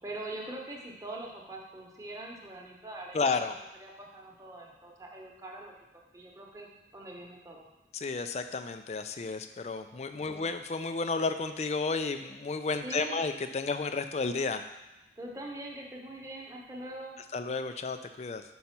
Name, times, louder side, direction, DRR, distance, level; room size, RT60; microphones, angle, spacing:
voice 1, 0.0-5.7 6.1-6.7 6.9-7.7 10.3-10.4 12.8-13.2 15.2-17.2, right 1 dB, 20° right, -1 dB, 1.0 m, -43 dB
voice 2, 3.1-3.6 7.9-14.6 17.3-18.4, left 4 dB, 35° left, 9 dB, 0.4 m, -32 dB
5.5 x 5.2 x 5.9 m, 0.98 s
head